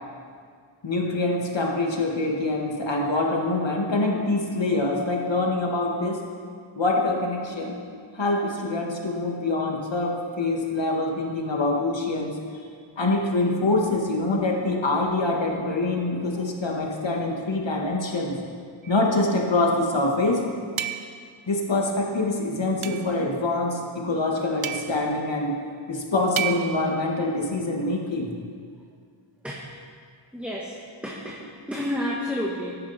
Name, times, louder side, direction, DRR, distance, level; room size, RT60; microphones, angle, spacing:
voice 1, 0.8-6.2 6.8-7.8 8.1-12.4 13.0-18.4 18.9-20.5 21.5-25.6 25.9-28.3, left 2 dB, 65° left, 0 dB, 2.0 m, -25 dB
sound 1, 18.8-19.1 20.8-21.3 22.8-23.2 24.6-25.1 26.4-26.9, right 10 dB, 85° right, 0.7 m, -31 dB
voice 2, 30.3-30.8 31.0-32.8, left 1 dB, 5° right, -3 dB, 1.6 m, -30 dB
14.5 x 10.5 x 4.3 m, 2.1 s
wide cardioid pair, 55°, 48 cm